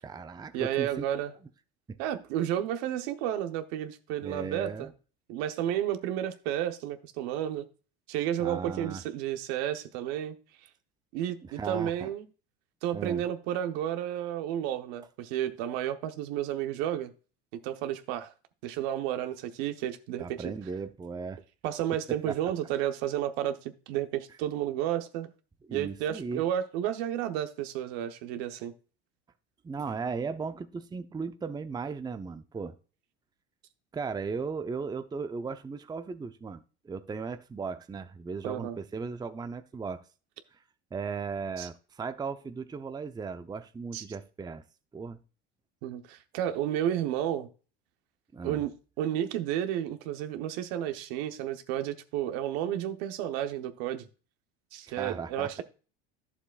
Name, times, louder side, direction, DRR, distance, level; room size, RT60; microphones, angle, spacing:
voice 1, 0.0-1.1 4.2-4.9 8.4-9.0 11.4-12.1 12.9-13.2 20.2-21.4 22.1-22.4 25.7-26.4 29.6-32.7 33.9-40.0 40.9-44.6 44.9-45.2 48.3-48.6 54.9-55.6, right 5 dB, 15° right, 0.6 m, -36 dB
voice 2, 0.5-1.3 2.0-4.9 5.3-7.7 8.1-10.3 11.1-12.3 12.8-17.1 17.6-18.3 18.6-20.5 21.6-25.3 25.7-28.7 38.4-38.8 41.6-41.7 43.9-44.0 45.8-47.5 48.4-54.1 54.7-55.6, right 11 dB, 70° right, 1.0 m, -32 dB
11.5 x 7.1 x 2.4 m
hypercardioid pair, 85°, 31 cm